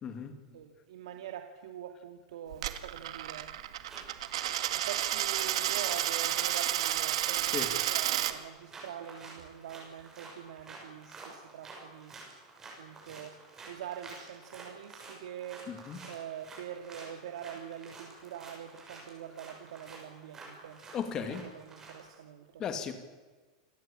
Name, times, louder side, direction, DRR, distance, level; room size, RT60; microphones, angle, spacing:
voice 1, 0.0-0.3 7.5-7.7 15.7-16.0 20.9-21.4 22.6-22.9, left 7 dB, 20° left, 8 dB, 2.4 m, -35 dB
voice 2, 0.5-3.6 4.4-12.2 12.8-13.4 13.7-15.7 16.0-20.9 21.1-22.9, right 9 dB, 90° right, 5 dB, 2.3 m, -44 dB
Coin (dropping), 2.5-8.3, right 13 dB, 70° right, 2.0 m, -31 dB
sound 1, 3.8-22.2, right 3 dB, 15° right, 6.8 m, -50 dB
28.5 x 19.0 x 8.7 m, 1.3 s
supercardioid pair, 180°, 3 cm